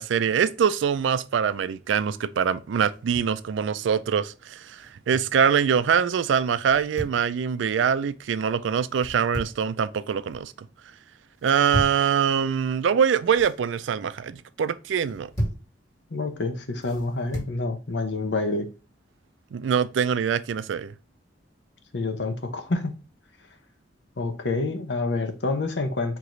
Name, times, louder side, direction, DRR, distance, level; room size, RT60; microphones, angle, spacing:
voice 1, 0.0-10.5 11.4-15.3 19.5-20.9, right 7 dB, 85° right, 0.4 m, -24 dB
sound 1, 2.9-3.4 4.7-5.4 6.6-7.2 8.9-9.7 10.1-10.5 11.4-12.1 13.1-13.6 14.9-15.7 16.8-17.6, equal, 15° left, 1.9 m, -34 dB
voice 2, 16.1-18.7 21.9-23.0 24.2-26.2, left 3 dB, 70° left, 0.8 m, -28 dB
4.7 x 2.9 x 3.8 m
head